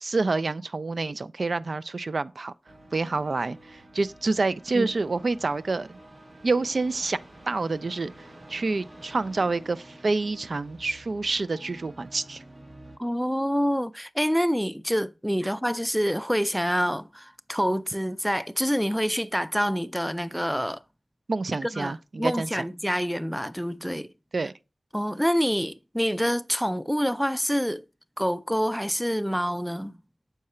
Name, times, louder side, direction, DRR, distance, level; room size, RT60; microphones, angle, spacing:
voice 1, 0.0-2.5 2.9-6.0 6.4-7.2 7.5-8.1 8.5-12.4 21.3-22.5 24.3-24.5, right 3 dB, 65° right, 0.3 m, -27 dB
sound 1, 2.7-13.0, right 1 dB, 50° right, 1.2 m, -49 dB
voice 2, 13.0-20.8 21.6-24.1 24.9-27.8 28.2-30.0, equal, ahead, 0.5 m, -27 dB
6.6 x 4.7 x 4.2 m
cardioid pair, 45°, 0 cm